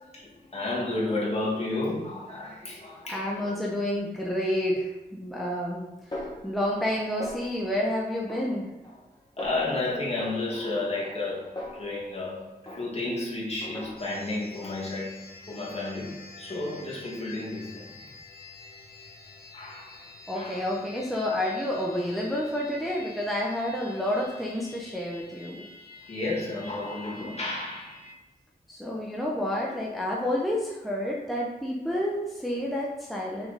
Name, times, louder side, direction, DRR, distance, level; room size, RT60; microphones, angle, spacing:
voice 1, 0.1-3.5 9.4-15.2 15.5-17.9 19.5-20.0 20.3-20.7 26.1-28.0, left 2 dB, 40° left, -6 dB, 1.8 m, -32 dB
voice 2, 3.1-5.8 6.4-8.7 20.3-25.6 28.7-33.5, left 1 dB, ahead, -3 dB, 0.7 m, -29 dB
Snare drum, 6.1-6.9 7.2-7.8 8.3-9.1 9.4-9.8 10.2-12.3 12.7-13.2 13.6-14.3, left 1 dB, 25° left, 1.5 m, -41 dB
sound 1, 14.0-28.1, left 4 dB, 60° left, 0.9 m, -48 dB
5.9 x 3.9 x 4.0 m, 1.0 s
wide cardioid pair, 135°, 17 cm